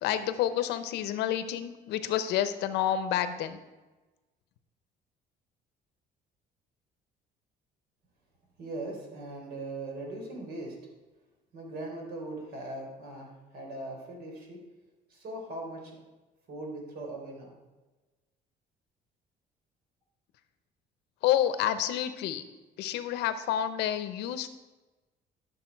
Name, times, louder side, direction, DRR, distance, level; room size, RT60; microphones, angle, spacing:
voice 1, 0.0-3.6 21.2-22.4 22.8-24.5, left 11 dB, 85° left, 11 dB, 0.8 m, -29 dB
voice 2, 8.6-10.8 11.5-14.6 15.1-16.0 16.5-17.6, right 2 dB, 70° right, 0 dB, 3.7 m, -40 dB
12.0 x 6.8 x 4.6 m, 1.2 s
cardioid pair, 110°, 17 cm